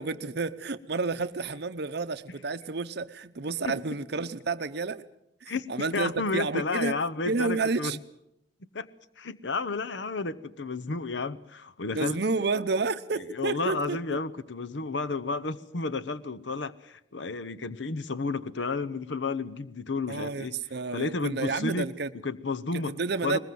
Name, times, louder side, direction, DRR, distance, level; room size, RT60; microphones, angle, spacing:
voice 1, 0.0-5.0 5.4-7.0 7.2-8.0 11.9-14.2 20.1-22.1 22.7-23.4, right 4 dB, 60° right, 10 dB, 0.8 m, -30 dB
voice 2, 5.5-7.9 8.7-8.9 9.2-12.2 13.3-20.6 20.9-21.9 22.2-23.4, left 3 dB, 80° left, 14 dB, 0.9 m, -32 dB
21.0 x 21.0 x 7.7 m, 0.80 s
head